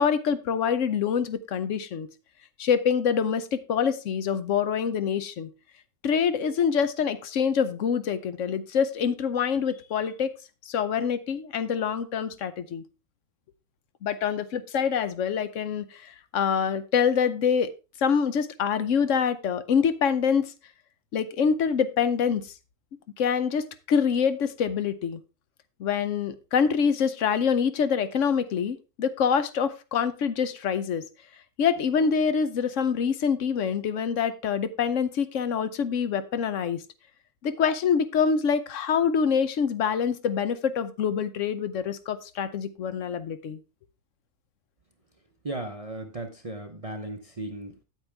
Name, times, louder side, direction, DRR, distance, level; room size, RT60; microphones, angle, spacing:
voice 1, 0.0-2.1 2.6-5.5 6.0-10.3 10.7-12.8 14.0-17.7 18.0-20.5 21.1-22.4 23.2-25.2 25.8-31.1 31.6-36.8 37.4-43.6, left 7 dB, 65° left, 13 dB, 1.0 m, -25 dB
voice 2, 45.4-47.8, right 2 dB, 30° right, 5 dB, 0.7 m, -36 dB
8.8 x 8.4 x 3.4 m, 0.30 s
omnidirectional pair, 1.5 m